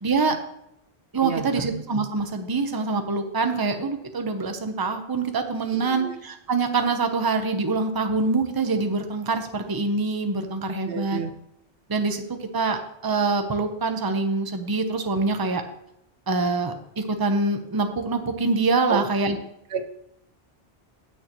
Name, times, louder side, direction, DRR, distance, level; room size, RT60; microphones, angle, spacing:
voice 1, 0.0-0.4 1.1-11.2 11.9-15.6 16.3-19.4, right 3 dB, 20° right, 6 dB, 0.8 m, -25 dB
voice 2, 1.2-1.8 5.7-6.2 10.9-11.3 18.9-19.0 19.7-19.8, right 5 dB, 75° right, 8 dB, 1.1 m, -30 dB
16.0 x 6.7 x 3.0 m, 0.78 s
omnidirectional pair, 1.1 m